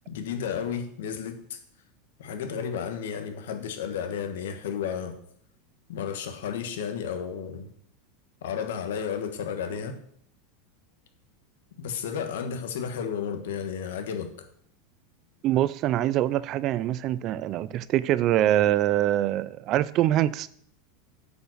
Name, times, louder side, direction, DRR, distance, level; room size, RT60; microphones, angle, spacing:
voice 1, 0.1-1.6 2.2-5.2 5.9-7.7 8.4-10.0 11.8-14.3, left 7 dB, 85° left, 1.4 m, -32 dB
voice 2, 15.4-20.5, right 13 dB, 40° right, 0.4 m, -24 dB
8.7 x 5.2 x 6.3 m
supercardioid pair, 150°, 0 cm